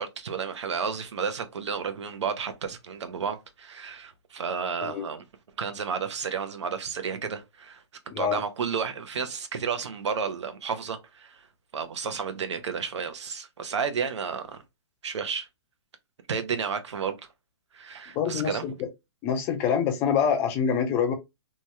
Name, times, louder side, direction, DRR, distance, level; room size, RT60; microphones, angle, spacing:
voice 1, 0.0-5.2 5.6-7.8 8.2-11.5 11.7-14.6 15.0-15.5 16.3-17.2 17.7-18.6, right 6 dB, 80° right, 0.7 m, -32 dB
voice 2, 8.1-8.4 18.2-18.9 19.2-21.1, left 7 dB, 15° left, 0.3 m, -26 dB
2.9 x 2.3 x 2.8 m
hypercardioid pair, 160°, 15 cm